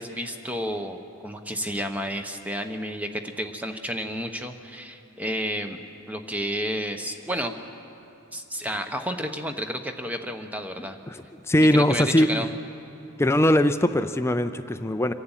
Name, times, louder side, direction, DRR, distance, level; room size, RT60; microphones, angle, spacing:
voice 1, 0.0-5.8 6.1-7.5 8.3-11.0 11.6-12.5, equal, 5° right, 6 dB, 1.0 m, -31 dB
voice 2, 11.1-12.4 13.2-15.1, left 1 dB, 10° left, 10 dB, 0.5 m, -21 dB
26.5 x 11.5 x 9.0 m, 2.9 s
head